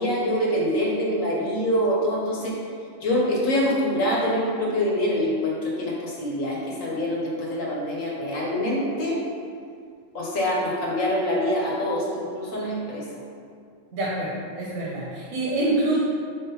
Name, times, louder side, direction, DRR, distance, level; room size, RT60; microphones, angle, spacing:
voice 1, 0.0-2.5 3.0-9.2 10.1-13.0, equal, 75° left, -3 dB, 1.5 m, -25 dB
voice 2, 13.9-16.0, right 2 dB, 80° right, -7 dB, 1.4 m, -26 dB
5.0 x 3.7 x 5.5 m, 2.2 s
omnidirectional pair, 1.4 m